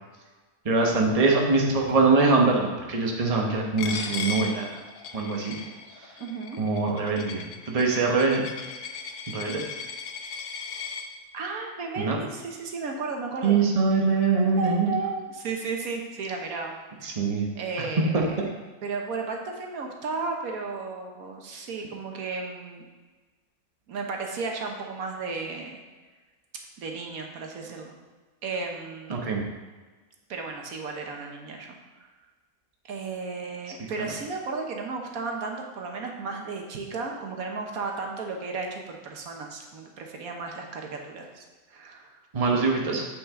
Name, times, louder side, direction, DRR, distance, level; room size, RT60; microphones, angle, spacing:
voice 1, 0.6-4.7 5.1-5.5 6.6-8.4 9.3-9.6 12.0-12.2 13.4-14.9 17.0-17.5 17.8-17.9 18.1-18.2 29.1-29.4 34.0-34.1 42.3-43.1, right 4 dB, 30° right, -1 dB, 1.1 m, -23 dB
Coin (dropping), 3.8-11.0, left 6 dB, 80° left, 1.2 m, -37 dB
voice 2, 6.2-6.6 11.3-13.6 14.4-16.7 17.0-17.1 17.5-18.2 18.8-22.8 23.9-25.8 26.8-27.9 28.4-29.4 30.3-31.8 32.9-42.2, right 4 dB, 80° right, 2 dB, 1.4 m, -34 dB
7.9 x 6.0 x 3.7 m, 1.3 s
omnidirectional pair, 1.5 m